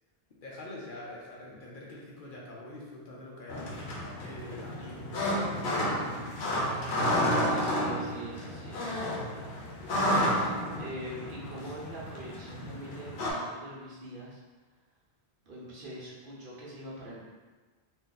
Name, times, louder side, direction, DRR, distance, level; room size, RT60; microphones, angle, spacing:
voice 1, 0.4-6.7 11.6-11.7, left 1 dB, 60° left, -4 dB, 0.7 m, -46 dB
sound 1, 3.5-13.3, equal, 85° left, 0.9 m, -31 dB
voice 2, 7.4-9.1 9.4-14.4 15.4-17.2, right 1 dB, 60° right, -6 dB, 1.0 m, -43 dB
2.7 x 2.5 x 3.8 m, 1.4 s
omnidirectional pair, 1.1 m